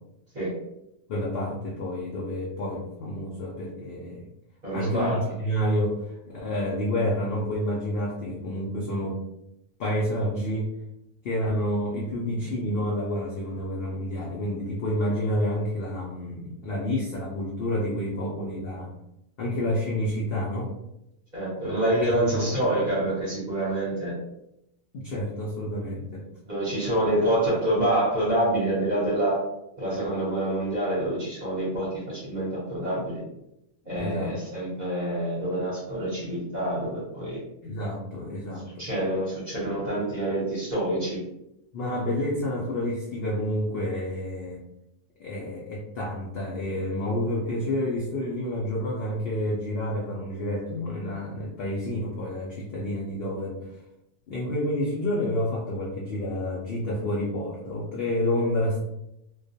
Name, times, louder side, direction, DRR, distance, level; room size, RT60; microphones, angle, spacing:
voice 1, 1.1-4.3 4.7-9.2 9.8-10.7 11.2-18.9 19.4-20.7 21.7-21.8 22.2-22.5 24.9-26.3 33.9-34.3 37.6-38.9 41.7-44.6 45.2-53.8 54.3-58.8, left 1 dB, 75° left, -3 dB, 0.5 m, -29 dB
voice 2, 4.6-5.2 21.3-24.1 26.5-29.4 29.8-33.2 33.9-37.4 38.8-41.2, right 1 dB, 40° right, -6 dB, 0.8 m, -27 dB
2.3 x 2.2 x 2.6 m, 0.84 s
omnidirectional pair, 1.5 m